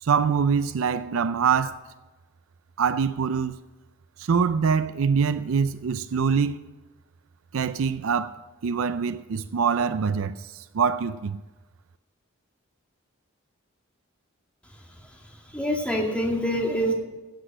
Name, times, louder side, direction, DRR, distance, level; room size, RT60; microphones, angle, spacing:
voice 1, 0.0-1.8 2.8-3.6 4.2-6.6 7.5-8.4 8.6-11.4, right 6 dB, 80° right, 0.4 m, -24 dB
voice 2, 15.0-16.9, equal, 5° left, 2.2 m, -26 dB
15.5 x 8.0 x 6.5 m
head